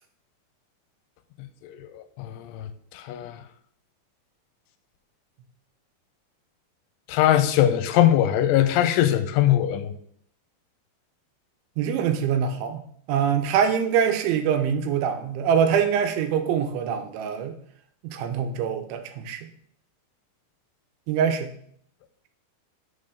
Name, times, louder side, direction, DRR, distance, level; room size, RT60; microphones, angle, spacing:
voice 1, 1.6-2.7 2.9-3.4 7.1-9.9, left 12 dB, 90° left, 3.1 m, -21 dB
voice 2, 11.8-17.5 18.0-19.4 21.1-21.5, right 7 dB, 85° right, 3.1 m, -24 dB
6.7 x 5.6 x 6.6 m
omnidirectional pair, 5.5 m